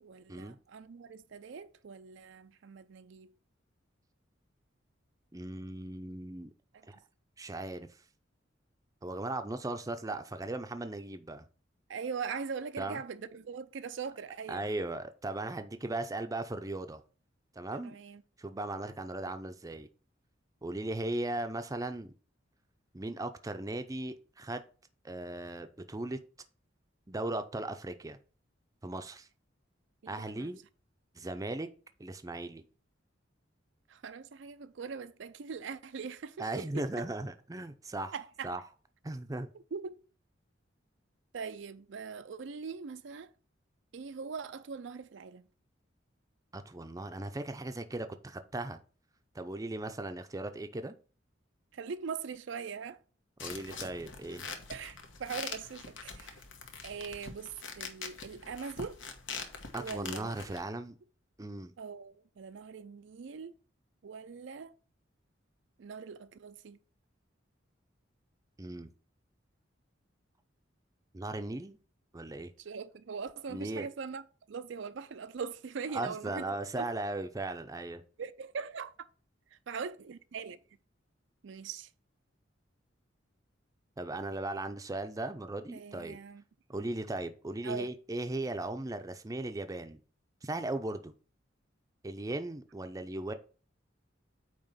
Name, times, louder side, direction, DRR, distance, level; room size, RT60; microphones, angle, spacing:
voice 1, 0.0-3.3 6.7-6.9 11.9-14.7 17.7-18.2 30.0-30.5 33.9-37.0 38.1-38.5 39.7-40.0 41.3-43.3 43.9-45.5 51.7-53.0 53.5-53.6 54.7-56.4 56.8-59.0 59.8-60.4 61.8-63.5 64.0-64.7 65.8-66.8 72.6-76.9 78.2-78.9 79.5-80.6 81.4-81.9 85.7-86.4 87.6-87.9, right 5 dB, 70° right, 0.4 m, -41 dB
voice 2, 5.3-6.5 6.9-7.0 7.4-7.9 9.0-11.4 12.8-13.0 14.5-17.0 17.6-18.0 18.4-19.9 20.6-22.1 22.9-24.6 25.0-26.2 27.1-28.2 28.8-29.3 30.1-30.6 31.2-31.7 32.0-32.6 36.4-38.1 38.4-38.6 39.0-39.5 46.5-48.8 49.3-50.9 53.4-54.5 59.7-60.9 61.4-61.7 68.6-68.9 71.1-71.8 72.1-72.5 73.5-73.9 75.9-78.0 84.0-86.2 86.7-90.0 90.4-91.1 92.0-93.3, right 2 dB, 20° right, 0.5 m, -37 dB
sound 1, 53.4-60.6, left 5 dB, 80° left, 1.2 m, -44 dB
8.8 x 3.0 x 5.6 m
head